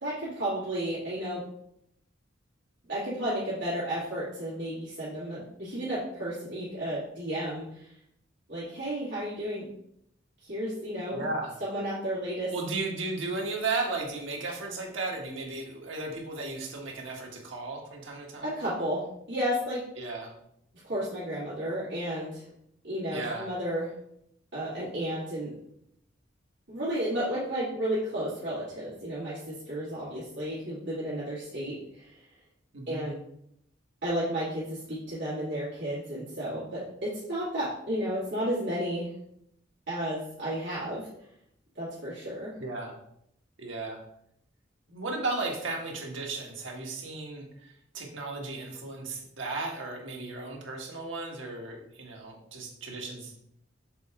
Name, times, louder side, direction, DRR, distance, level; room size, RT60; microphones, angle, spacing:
voice 1, 0.0-1.4 2.9-7.9 8.5-9.7 10.4-11.3 11.6-12.5 18.4-19.8 20.8-22.4 22.8-23.9 24.5-25.5 26.7-32.2 32.9-33.2 34.0-39.1 39.9-41.1 41.7-42.5, equal, 65° right, -11 dB, 2.5 m, -32 dB
voice 2, 11.1-11.5 12.5-18.5 20.0-20.3 23.1-23.5 32.7-33.1 42.6-42.9 43.6-44.0 44.9-53.3, right 3 dB, 85° right, 0 dB, 1.5 m, -35 dB
6.7 x 4.4 x 3.7 m, 0.74 s
head